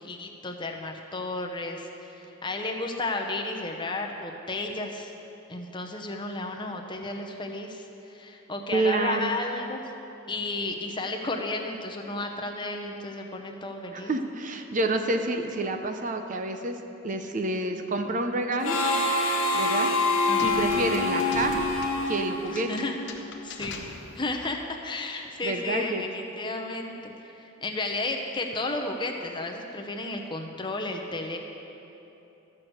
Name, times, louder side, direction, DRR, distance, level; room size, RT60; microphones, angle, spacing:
voice 1, 0.0-5.1 5.5-9.9 10.3-14.1 20.3-20.8 22.5-23.0 23.4-23.9 24.2-31.4, left 2 dB, 20° left, 2 dB, 0.8 m, -33 dB
voice 2, 8.7-9.4 13.9-16.8 17.0-18.8 19.5-19.9 20.4-21.7 22.0-22.7 25.4-26.0, right 2 dB, 40° right, 6 dB, 0.6 m, -28 dB
Harmonica, 18.6-23.1, left 2 dB, 85° left, 1.4 m, -26 dB
sound 1, 20.4-24.5, left 3 dB, 60° left, 0.9 m, -42 dB
13.0 x 6.2 x 7.9 m, 3.0 s
head